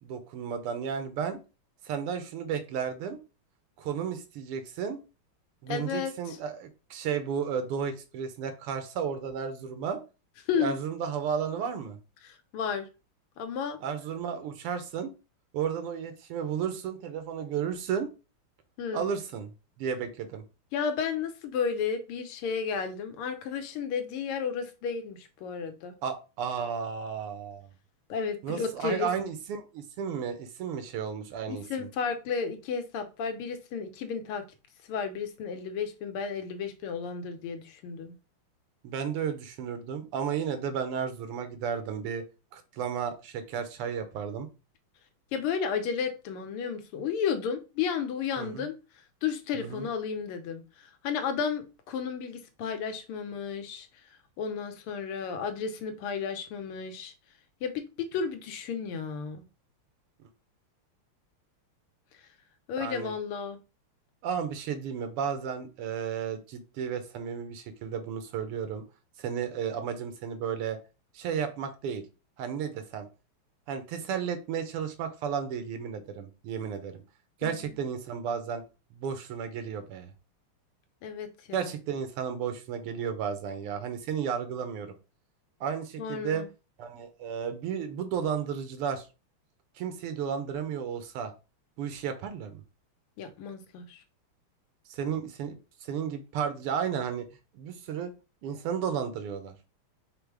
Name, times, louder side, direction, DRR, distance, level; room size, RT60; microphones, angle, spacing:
voice 1, 0.0-1.4 1.8-3.2 3.8-5.0 5.6-10.0 10.6-12.0 13.8-15.1 15.5-18.1 18.9-19.5 19.8-20.4 26.0-27.7 28.4-31.9 38.8-42.2 42.5-44.5 48.4-48.7 49.5-49.9 62.8-63.1 64.2-68.8 69.2-70.8 71.1-72.0 72.4-73.1 73.7-77.0 77.4-78.6 78.9-80.1 81.5-84.9 85.6-86.4 86.8-89.0 89.8-91.3 91.8-92.6 94.9-97.3 97.5-98.1 98.4-99.5, right 7 dB, 90° right, 1.8 m, -33 dB
voice 2, 5.7-6.4 10.5-10.8 12.2-12.9 13.4-13.8 18.8-19.1 20.7-25.9 28.1-29.1 31.5-34.4 34.9-38.1 45.3-48.7 49.2-53.9 54.4-57.1 57.6-59.4 62.7-63.6 77.4-77.5 81.0-81.7 86.0-86.5 93.2-94.0, left 6 dB, 80° left, 1.6 m, -33 dB
5.1 x 2.1 x 4.6 m
omnidirectional pair, 2.4 m